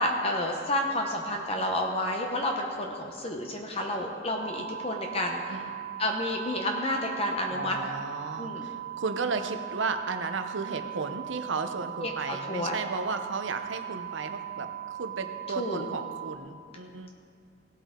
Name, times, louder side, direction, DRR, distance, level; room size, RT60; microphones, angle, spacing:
voice 1, 0.0-5.6 6.0-7.8 8.4-8.7 12.0-12.8 15.6-15.9, left 1 dB, 30° left, 2 dB, 0.8 m, -30 dB
sound 1, 4.4-16.4, right 12 dB, 45° right, 0.3 m, -39 dB
voice 2, 7.5-17.1, right 4 dB, 75° right, 8 dB, 0.8 m, -34 dB
17.5 x 8.3 x 3.8 m, 2.3 s
head